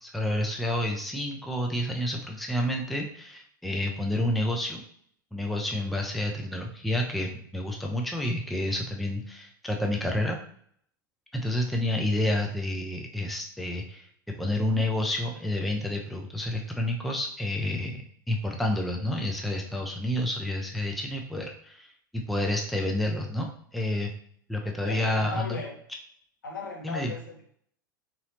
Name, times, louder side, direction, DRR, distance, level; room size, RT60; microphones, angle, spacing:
voice 1, 0.0-4.8 5.3-10.4 11.3-14.1 14.4-24.1 24.5-25.6 26.8-27.1, left 1 dB, ahead, 1 dB, 0.4 m, -29 dB
voice 2, 24.8-25.8 26.4-27.4, left 3 dB, 70° left, -2 dB, 1.1 m, -36 dB
3.9 x 2.9 x 2.7 m, 0.63 s
figure-of-eight pair, 85°, 11 cm